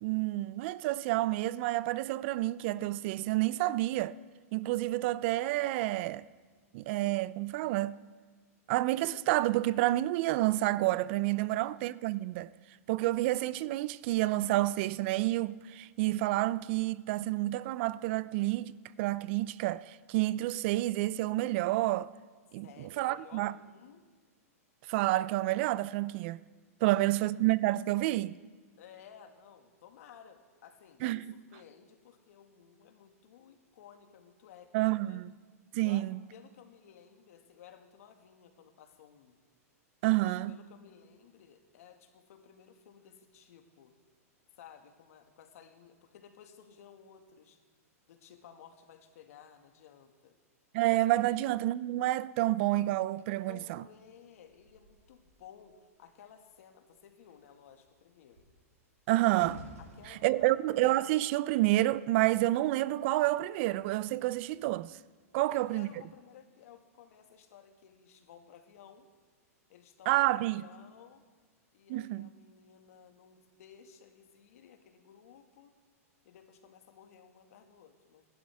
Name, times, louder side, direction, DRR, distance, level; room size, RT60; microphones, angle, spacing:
voice 1, 0.0-4.2 4.5-6.3 6.7-8.0 8.7-12.5 12.9-18.7 19.0-22.1 22.5-23.5 24.9-26.4 26.8-28.4 31.0-31.2 34.7-35.3 35.7-36.2 40.0-40.6 50.7-53.8 59.1-59.6 60.2-65.0 65.3-65.9 70.1-70.6 71.9-72.3, right 17 dB, 50° right, 0.5 m, -29 dB
voice 2, 11.4-11.7 22.6-24.0 26.8-26.9 28.8-35.2 35.8-39.4 40.2-43.9 44.6-47.6 48.1-50.4 51.2-51.4 53.4-58.4 59.8-60.6 65.3-69.1 69.7-71.2 71.7-75.7 76.2-78.3, left 8 dB, 65° left, 1.9 m, -56 dB
sound 1, 53.1-55.8 56.1-56.5 56.8-62.1 62.9-63.1, equal, 80° right, 5.3 m, -55 dB
27.5 x 11.5 x 3.6 m
hypercardioid pair, 130°, 8 cm